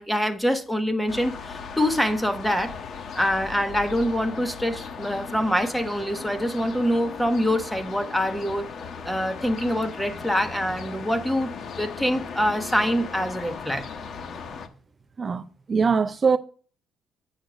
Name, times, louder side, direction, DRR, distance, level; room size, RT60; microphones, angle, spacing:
voice 1, 0.0-2.7 3.1-8.7 9.0-13.9, equal, 5° left, 1.2 m, -25 dB
sound 1, 1.1-14.7, left 5 dB, 60° left, 1.1 m, -37 dB
voice 2, 15.7-16.4, right 5 dB, 35° right, 0.5 m, -21 dB
9.0 x 6.5 x 5.1 m
cardioid pair, 90°, 0 cm